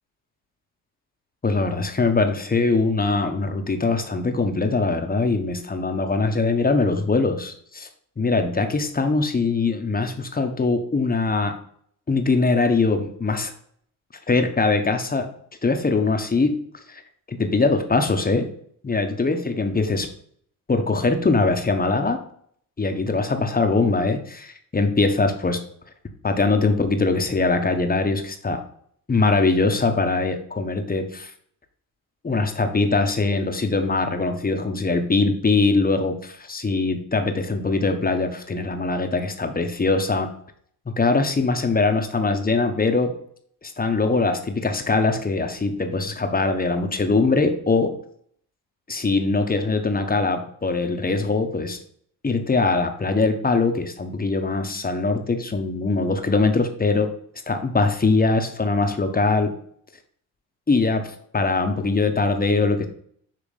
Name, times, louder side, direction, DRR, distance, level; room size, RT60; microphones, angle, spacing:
voice 1, 1.4-7.9 8.2-11.5 12.1-13.5 14.3-15.3 15.6-16.5 16.9-17.0 17.3-18.5 18.8-20.1 20.7-22.2 22.8-25.6 26.2-28.6 29.1-31.3 32.2-40.3 41.0-43.1 43.6-47.9 48.9-51.8 52.2-57.1 57.5-59.5 60.7-62.9, left 3 dB, 25° left, 6 dB, 1.2 m, -22 dB
7.3 x 3.3 x 5.0 m, 0.63 s
supercardioid pair, 65°, 38 cm